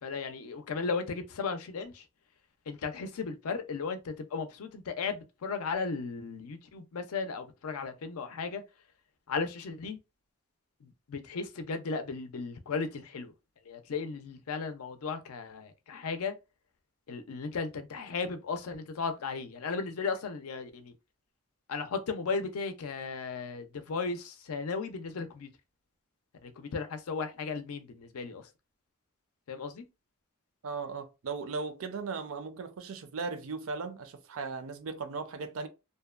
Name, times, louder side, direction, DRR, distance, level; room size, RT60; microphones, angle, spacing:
voice 1, 0.0-2.0 2.7-8.6 9.3-10.0 10.8-13.3 13.7-16.3 17.1-20.9 21.7-25.5 26.4-28.4 29.5-29.8, left 4 dB, 75° left, 0.5 m, -35 dB
voice 2, 30.6-35.7, right 4 dB, 65° right, 0.4 m, -37 dB
2.7 x 2.1 x 2.3 m
head